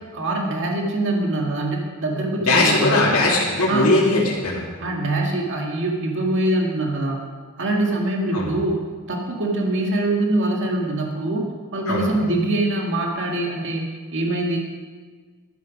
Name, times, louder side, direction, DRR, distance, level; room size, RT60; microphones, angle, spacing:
voice 1, 0.1-3.1 3.7-3.9 4.8-7.3 7.6-11.4 11.7-14.6, right 2 dB, 60° right, 0 dB, 1.8 m, -23 dB
voice 2, 2.4-4.6 8.3-8.5 11.9-12.1, left 2 dB, 75° left, -6 dB, 2.3 m, -19 dB
13.0 x 10.0 x 5.0 m, 1.5 s
head